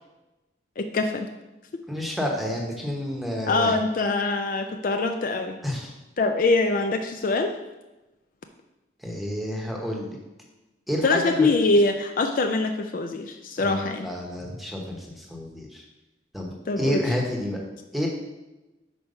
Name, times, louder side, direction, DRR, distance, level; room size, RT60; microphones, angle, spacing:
voice 1, 0.8-1.3 3.5-5.6 6.2-7.5 11.0-14.1 16.7-17.0, left 3 dB, 50° left, 6 dB, 0.4 m, -23 dB
voice 2, 1.9-3.8 5.6-5.9 9.0-10.2 10.9-11.5 13.6-15.8 16.3-16.5 16.8-17.6 17.9-18.1, equal, ahead, -1 dB, 1.0 m, -29 dB
5.2 x 4.5 x 5.3 m, 1.0 s
head